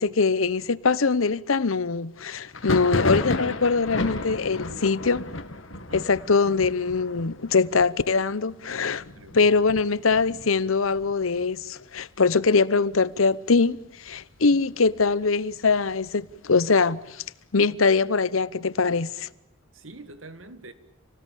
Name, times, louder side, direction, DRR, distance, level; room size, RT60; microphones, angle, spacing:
voice 1, 0.0-5.3 5.9-9.0 9.3-17.2 17.5-19.3, left 4 dB, 90° left, 0.9 m, -23 dB
Thunder, 2.5-12.0 12.3-13.0 13.2-14.2 14.6-16.3, left 2 dB, 70° left, 2.3 m, -33 dB
voice 2, 5.7-6.1 9.1-9.4 14.5-14.6 19.7-20.7, right 2 dB, 70° right, 2.0 m, -45 dB
29.0 x 19.0 x 8.4 m
head